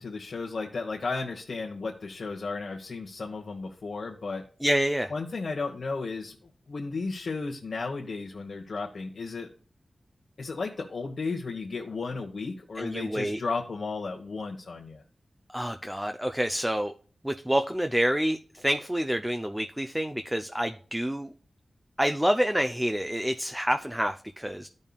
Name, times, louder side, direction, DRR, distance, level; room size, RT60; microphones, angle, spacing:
voice 1, 0.0-4.4 5.1-6.3 6.7-9.5 10.4-15.0, left 4 dB, 65° left, -2 dB, 1.1 m, -34 dB
voice 2, 4.6-5.1 12.8-13.4 15.5-16.9 17.2-21.3 22.0-24.7, equal, 5° right, 7 dB, 0.5 m, -28 dB
14.0 x 5.4 x 2.3 m, 0.43 s
wide cardioid pair, 100°, 0 cm